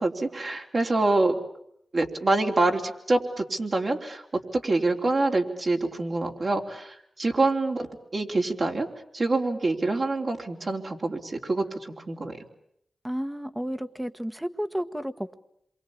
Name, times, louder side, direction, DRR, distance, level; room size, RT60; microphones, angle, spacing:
voice 1, 0.0-1.3 1.9-4.2 4.5-8.9 9.1-12.4, right 2 dB, 50° right, 1 dB, 3.5 m, -26 dB
voice 2, 13.0-15.4, equal, 10° right, 10 dB, 1.5 m, -32 dB
27.5 x 23.5 x 8.7 m, 0.74 s
cardioid pair, 50°, 0 cm